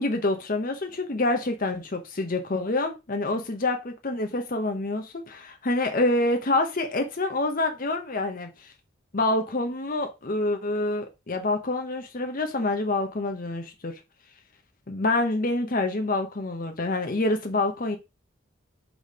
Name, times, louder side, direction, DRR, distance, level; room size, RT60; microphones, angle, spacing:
voice 1, 0.0-8.7 9.1-14.0 14.9-18.0, left 2 dB, 45° left, 0.9 m, -27 dB
6.2 x 3.4 x 4.8 m
head